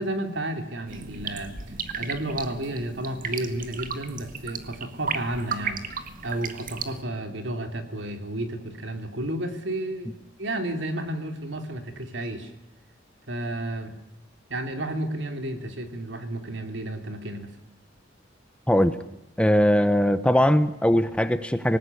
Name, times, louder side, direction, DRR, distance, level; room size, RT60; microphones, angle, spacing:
voice 1, 0.0-1.5 1.9-5.9 6.2-12.5 13.3-13.9 14.5-17.5, right 1 dB, 70° right, 7 dB, 3.3 m, -32 dB
sound 1, 0.9-7.0, right 5 dB, 45° right, 1.8 m, -35 dB
voice 2, 18.7-19.0 19.4-21.8, equal, 5° left, 12 dB, 1.0 m, -20 dB
25.5 x 19.0 x 9.8 m, 0.89 s
head